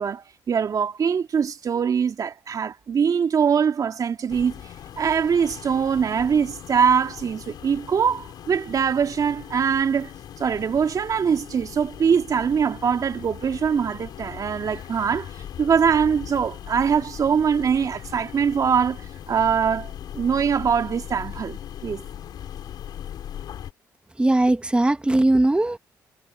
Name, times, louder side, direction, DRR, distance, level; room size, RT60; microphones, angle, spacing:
voice 1, 0.0-4.6 5.0-10.1 10.4-15.3 15.6-22.0, right 7 dB, 55° right, 2.5 m, -23 dB
sound 1, 4.3-23.7, left 10 dB, 75° left, 4.9 m, -39 dB
voice 2, 24.2-25.8, right 2 dB, 15° right, 1.1 m, -19 dB
supercardioid pair, 65°, 7 cm